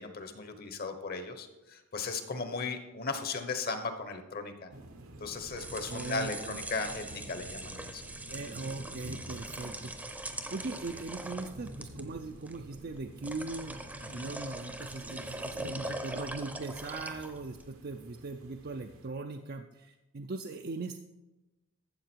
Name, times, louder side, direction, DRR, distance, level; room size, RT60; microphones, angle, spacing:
voice 1, 0.0-4.7 5.2-8.0 9.6-9.7 14.0-14.3, left 4 dB, 45° left, 8 dB, 1.1 m, -37 dB
sound 1, 4.7-19.1, right 1 dB, 75° right, 1.1 m, -49 dB
sound 2, 5.4-17.7, right 1 dB, 5° right, 0.7 m, -42 dB
voice 2, 5.9-6.6 8.3-9.9 10.5-13.8 14.1-21.0, right 3 dB, 45° right, 5 dB, 0.5 m, -40 dB
13.0 x 7.6 x 4.6 m, 1.0 s
head